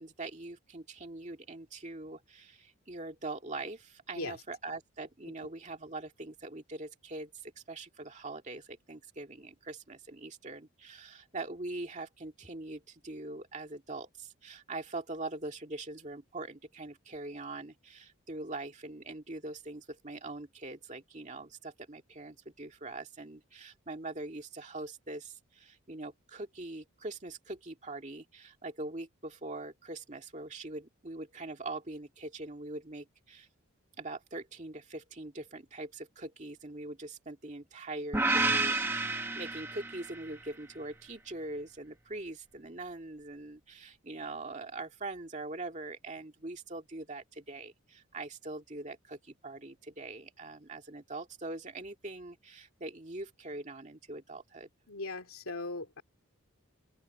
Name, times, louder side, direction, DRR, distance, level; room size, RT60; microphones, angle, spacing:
voice 1, 0.0-33.5 34.0-54.7, right 2 dB, 35° right, 2.2 m, -42 dB
sound 1, 38.1-40.3, right 3 dB, 10° right, 1.0 m, -30 dB
voice 2, 54.9-56.0, left 3 dB, 75° left, 2.6 m, -38 dB
open air
head